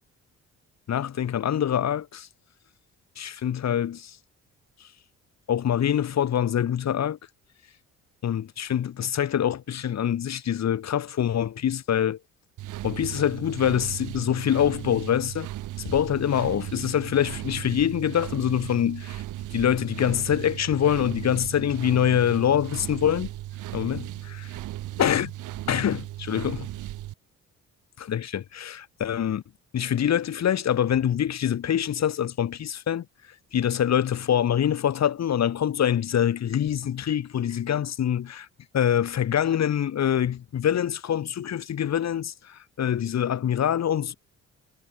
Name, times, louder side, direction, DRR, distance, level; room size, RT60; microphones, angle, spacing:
voice 1, 0.9-2.3 3.2-4.2 5.5-7.2 8.2-12.2 12.8-15.5 15.8-19.2 19.5-23.3 23.7-24.5 25.0-25.3 25.7-26.7 28.0-29.4 29.7-33.0 33.5-38.5 38.7-44.1, left 9 dB, 60° left, 4.3 m, -25 dB
sound 1, 12.6-27.1, right 15 dB, 85° right, 4.1 m, -36 dB
cardioid pair, 90°, 30 cm